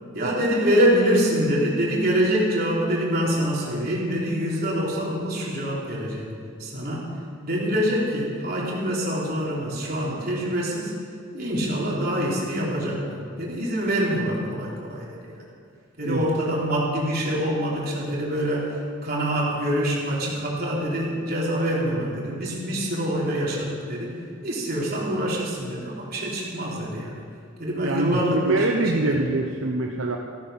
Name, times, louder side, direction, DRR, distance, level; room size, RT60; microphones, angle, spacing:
voice 1, 0.1-6.3 6.6-7.1 7.4-10.9 11.3-15.3 16.0-18.7 19.0-24.2 24.4-27.2 27.6-28.6 28.9-29.2, equal, 50° right, -4 dB, 3.7 m, -25 dB
voice 2, 27.8-30.2, right 2 dB, 80° right, 1 dB, 1.0 m, -24 dB
14.5 x 13.5 x 5.9 m, 2.6 s
head